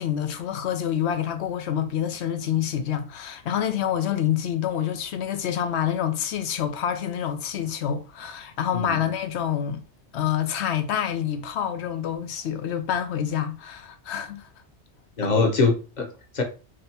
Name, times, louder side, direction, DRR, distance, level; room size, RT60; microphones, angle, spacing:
voice 1, 0.0-9.8 10.1-14.5 15.2-15.3, left 9 dB, 75° left, 0.9 m, -27 dB
voice 2, 15.2-16.4, left 4 dB, 40° left, 1.0 m, -23 dB
5.1 x 3.4 x 2.8 m
omnidirectional pair, 1.1 m